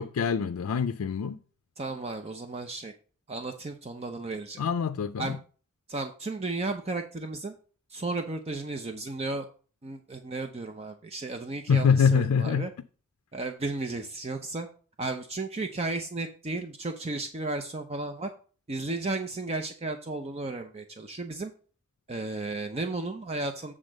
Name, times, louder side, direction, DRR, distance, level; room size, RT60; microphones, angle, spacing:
voice 1, 0.0-1.4 4.6-5.4 11.7-12.7, left 6 dB, 85° left, 0.4 m, -25 dB
voice 2, 1.8-2.9 3.3-4.6 5.2-5.3 5.9-7.5 7.9-9.5 9.8-12.7 13.3-14.7 15.0-18.3 18.7-21.5 22.1-23.7, right 2 dB, 30° right, 0.6 m, -34 dB
8.0 x 3.7 x 6.4 m
head